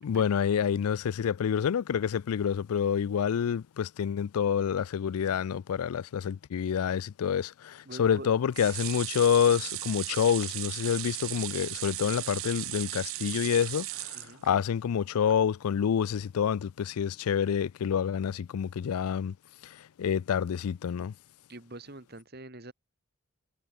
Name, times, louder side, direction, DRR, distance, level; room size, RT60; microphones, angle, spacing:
voice 1, 0.0-19.3 19.6-21.1, left 8 dB, 85° left, 0.4 m, -28 dB
voice 2, 7.8-8.3 14.1-14.4 21.5-22.7, right 2 dB, 45° right, 2.4 m, -44 dB
sound 1, 8.5-14.9 15.3-15.4 15.7-15.8, right 18 dB, 70° right, 0.6 m, -37 dB
head